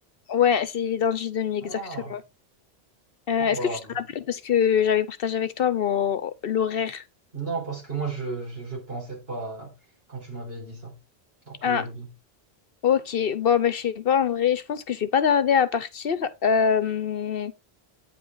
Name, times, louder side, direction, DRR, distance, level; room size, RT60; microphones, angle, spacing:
voice 1, 0.3-1.8 2.1-2.2 3.3-7.0 11.6-11.8 12.8-17.5, left 7 dB, 65° left, 0.9 m, -24 dB
voice 2, 1.6-2.1 3.4-3.8 7.3-9.7 10.1-11.0 11.5-12.1, right 4 dB, 65° right, 5.2 m, -34 dB
9.2 x 5.3 x 3.8 m
omnidirectional pair, 1.1 m